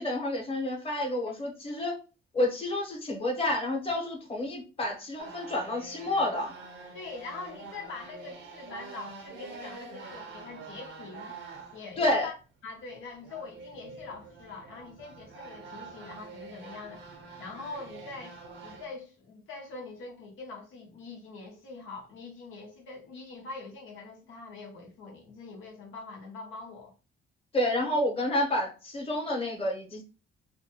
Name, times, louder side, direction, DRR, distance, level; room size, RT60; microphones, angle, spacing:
voice 1, 0.0-2.0 2.3-6.5 12.0-12.3 27.5-30.0, left 1 dB, 30° left, 1.0 m, -29 dB
sound 1, 5.2-12.0 12.3-12.4 12.7-18.9, right 4 dB, 75° right, 0.8 m, -46 dB
voice 2, 6.9-11.4 11.7-12.4 12.6-26.9 27.8-27.9, left 3 dB, 80° left, 0.8 m, -43 dB
2.6 x 2.2 x 2.9 m
cardioid pair, 90°, 20 cm